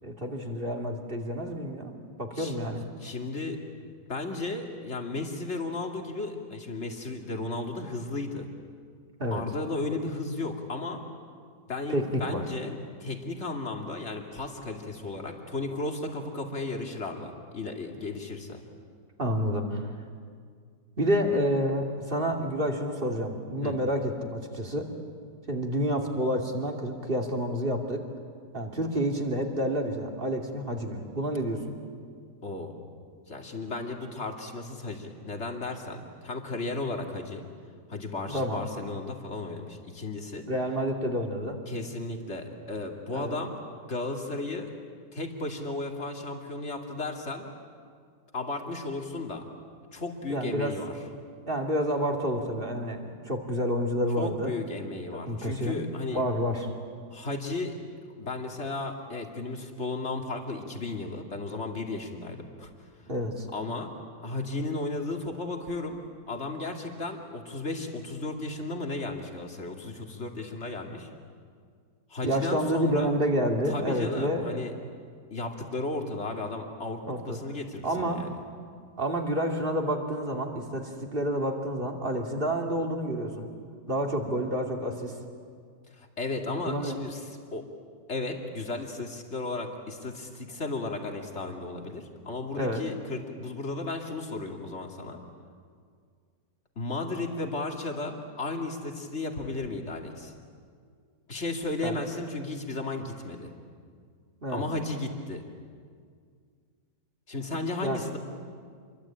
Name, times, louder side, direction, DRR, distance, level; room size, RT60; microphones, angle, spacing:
voice 1, 0.0-2.9 9.2-9.4 11.9-12.4 19.2-19.8 21.0-24.9 25.5-28.0 28.5-31.7 38.3-38.6 40.5-41.6 43.1-43.4 50.3-50.7 51.5-54.5 55.3-55.8 56.1-56.7 63.1-63.5 72.2-74.6 77.1-77.4 77.8-78.2 79.0-83.5 83.9-85.2 86.6-86.9 92.6-92.8 101.8-101.9 104.4-104.6 107.8-108.2, equal, 30° right, 2 dB, 2.8 m, -29 dB
voice 2, 3.0-8.5 9.3-11.0 11.7-18.6 23.6-23.8 32.4-32.7 33.3-37.4 37.9-40.4 41.7-43.6 43.9-44.7 45.1-47.5 48.3-49.4 49.9-50.9 54.2-56.2 57.1-57.7 58.2-62.7 63.5-63.9 64.2-66.0 66.3-71.1 72.1-73.2 73.7-74.7 75.3-78.4 85.9-87.6 88.1-95.2 96.8-100.3 101.3-103.5 104.5-105.4 107.3-108.2, left 2 dB, 40° left, 2 dB, 2.8 m, -34 dB
28.0 x 23.0 x 8.9 m, 2.1 s
omnidirectional pair, 1.8 m